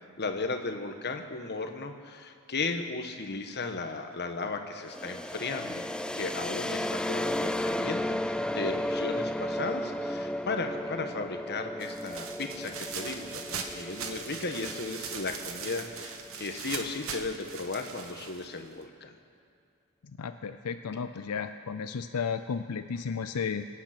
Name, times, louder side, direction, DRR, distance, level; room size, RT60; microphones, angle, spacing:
voice 1, 0.2-5.8 6.2-19.1, left 3 dB, 50° left, 5 dB, 1.3 m, -35 dB
sound 1, 4.9-16.5, left 1 dB, 5° left, 0.3 m, -34 dB
empty trash bag rustling, 11.8-18.8, right 6 dB, 65° right, 1.3 m, -40 dB
voice 2, 20.0-23.6, left 6 dB, 90° left, 9 dB, 0.5 m, -33 dB
24.5 x 9.1 x 6.0 m, 2.3 s
head